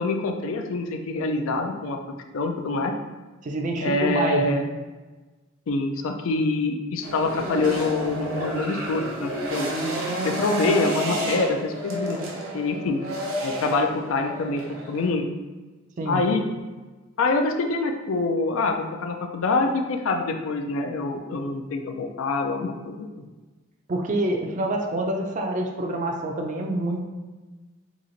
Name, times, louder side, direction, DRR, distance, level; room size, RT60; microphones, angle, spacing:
voice 1, 0.0-2.0 2.3-2.9 3.8-4.7 5.7-9.7 10.2-12.2 12.5-13.0 13.4-14.6 14.9-15.3 16.1-16.4 17.2-23.1, left 3 dB, 75° left, 4 dB, 0.4 m, -25 dB
voice 2, 3.4-4.6 16.0-16.3 23.9-27.0, right 1 dB, 35° right, 2 dB, 0.4 m, -26 dB
sound 1, 7.0-15.1, right 1 dB, 85° right, 0.8 m, -30 dB
3.0 x 2.4 x 3.8 m, 1.2 s
head